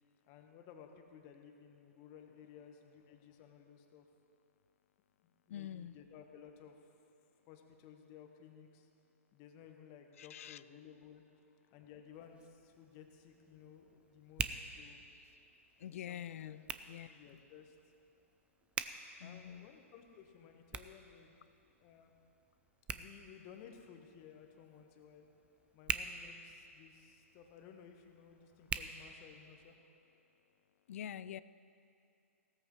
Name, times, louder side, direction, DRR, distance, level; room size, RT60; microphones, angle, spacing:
voice 1, 0.3-4.1 5.2-6.9 7.5-8.9 9.3-11.2 11.7-15.0 15.9-16.6 17.1-17.8 19.2-21.4 21.8-22.1 22.9-25.3 25.7-29.7, left 8 dB, 35° left, 4 dB, 1.3 m, -57 dB
voice 2, 5.5-6.0 10.2-10.6 15.8-17.1 19.2-19.7 30.9-31.4, left 10 dB, 60° left, 17 dB, 0.4 m, -46 dB
Hands, 12.1-29.8, right 6 dB, 15° right, 0.4 m, -47 dB
16.5 x 13.5 x 3.2 m, 2.5 s
hypercardioid pair, 125°, 8 cm